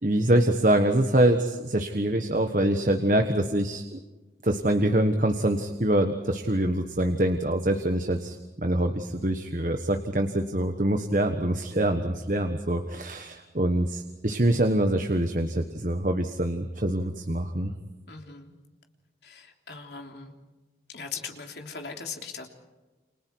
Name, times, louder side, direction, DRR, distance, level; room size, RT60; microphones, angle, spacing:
voice 1, 0.0-4.0 4.4-17.7, right 1 dB, 45° right, 6 dB, 1.4 m, -25 dB
voice 2, 18.1-18.5 19.2-20.3 20.9-22.5, left 5 dB, 75° left, 3 dB, 3.4 m, -39 dB
29.5 x 27.5 x 4.7 m, 1.1 s
head